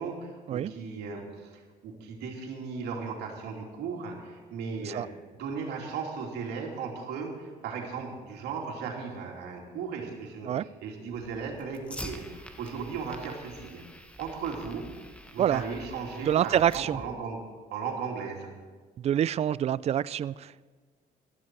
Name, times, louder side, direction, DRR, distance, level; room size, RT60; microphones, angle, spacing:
voice 1, 0.0-5.1 5.3-13.8 14.2-14.9 15.3-17.4 17.7-18.5, right 5 dB, 80° right, 0 dB, 2.9 m, -36 dB
Fire, 11.1-17.1, left 1 dB, 5° left, 1.1 m, -46 dB
voice 2, 16.3-17.0 19.0-20.7, right 10 dB, 40° right, 19 dB, 0.4 m, -26 dB
15.5 x 13.0 x 4.6 m, 1.4 s
cardioid pair, 110°, 17 cm